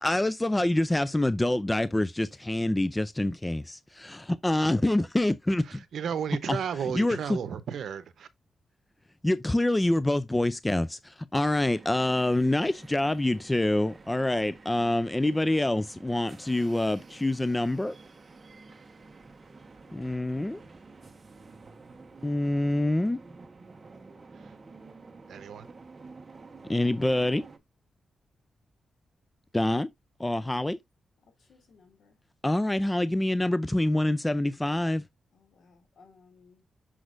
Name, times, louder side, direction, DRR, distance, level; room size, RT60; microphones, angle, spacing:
voice 1, 0.0-3.6 4.1-5.8 6.9-7.2 9.2-18.0 19.9-20.6 22.2-23.2 26.7-27.4 29.5-29.9 30.2-30.8 32.4-35.0, left 1 dB, 15° left, 0.4 m, -26 dB
voice 2, 5.6-8.3 24.3-24.6 25.3-25.7, right 7 dB, 80° right, 0.9 m, -34 dB
sound 1, 11.7-27.6, right 3 dB, 35° right, 1.1 m, -50 dB
voice 3, 31.4-32.2 35.3-36.6, left 4 dB, 75° left, 2.4 m, -59 dB
6.3 x 6.1 x 2.5 m
cardioid pair, 90°, 0 cm